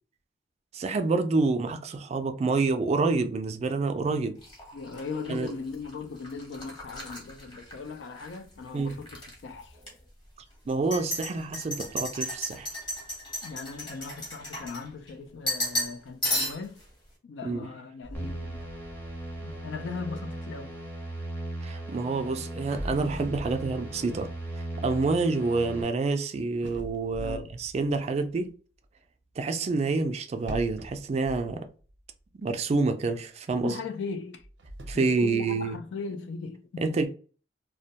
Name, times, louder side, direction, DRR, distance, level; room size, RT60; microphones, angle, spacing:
voice 1, 0.7-4.4 5.3-5.5 8.7-9.0 10.7-12.7 17.4-17.7 21.6-24.3 24.6-28.5 29.4-31.7 32.4-33.8 34.9-35.8 36.8-37.1, right 3 dB, 35° right, 0.3 m, -28 dB
sound 1, 4.4-8.4 8.7-9.3 9.8-9.9 10.7-15.1 15.5-16.0 16.2-16.8, left 1 dB, 25° left, 1.0 m, -34 dB
voice 2, 4.7-9.8 13.4-16.8 17.2-18.7 19.4-20.7 27.2-27.5 33.6-34.5 34.9-37.1, left 4 dB, 85° left, 0.4 m, -38 dB
sound 2, 18.0-21.2 22.1-22.2 22.6-26.0 26.6-28.5 30.4-32.2 32.5-32.6 33.2-33.3 34.3-34.9, right 1 dB, 80° right, 0.6 m, -43 dB
sound 3, 18.1-25.8, right 1 dB, 10° left, 0.6 m, -38 dB
2.2 x 2.1 x 2.8 m
head